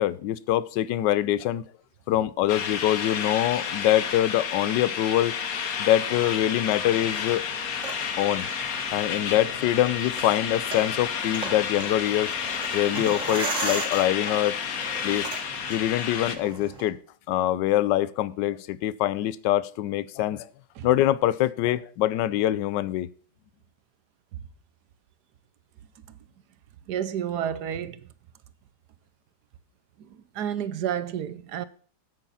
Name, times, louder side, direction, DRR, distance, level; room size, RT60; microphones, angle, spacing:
voice 1, 0.0-1.6 2.1-5.3 5.8-7.4 8.2-8.5 8.9-12.3 12.7-14.6 15.0-15.3 15.7-17.0 17.3-20.5 20.8-23.1, left 13 dB, 80° left, 1.3 m, -24 dB
sound 1, 2.5-16.4, left 7 dB, 55° left, 1.4 m, -31 dB
sound 2, 6.0-16.9, right 3 dB, 45° right, 2.2 m, -38 dB
voice 2, 26.9-28.1 30.0-31.6, right 9 dB, 70° right, 1.2 m, -31 dB
8.9 x 8.2 x 5.5 m
omnidirectional pair, 1.9 m